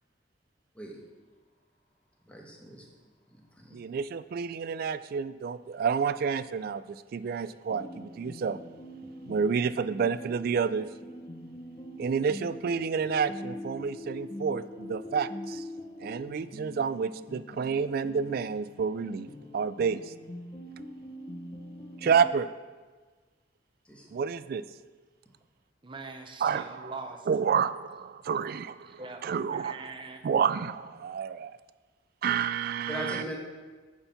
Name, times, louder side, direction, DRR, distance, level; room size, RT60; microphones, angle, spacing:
voice 1, 2.3-2.9 3.6-3.8 23.8-24.2 32.9-33.4, equal, 5° left, -1 dB, 1.2 m, -39 dB
voice 2, 3.7-8.6 9.3-10.9 12.0-15.6 16.0-19.3 19.5-20.0 22.0-22.5 24.1-24.6 26.4-26.9 27.3-29.8 30.2-31.6 32.2-33.2, right 6 dB, 55° right, 15 dB, 0.3 m, -29 dB
sound 1, 7.7-22.3, left 1 dB, 30° left, 0.6 m, -43 dB
voice 3, 25.8-27.3 28.9-29.2 29.5-30.2, right 3 dB, 25° right, 5 dB, 0.7 m, -42 dB
8.8 x 4.5 x 5.7 m, 1.4 s
head